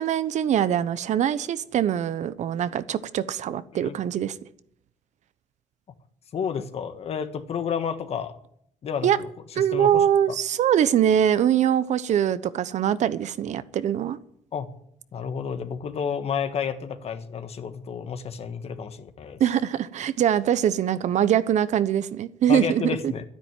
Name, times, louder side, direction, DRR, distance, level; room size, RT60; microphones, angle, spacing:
voice 1, 0.0-4.4 9.0-9.2 9.6-14.2 19.4-23.1, right 10 dB, 65° right, 0.9 m, -23 dB
voice 2, 6.3-8.3 8.8-9.3 9.6-10.4 14.5-14.7 15.1-19.4 22.5-23.2, left 7 dB, 50° left, 1.5 m, -31 dB
12.5 x 10.0 x 9.1 m
cardioid pair, 130°, 13 cm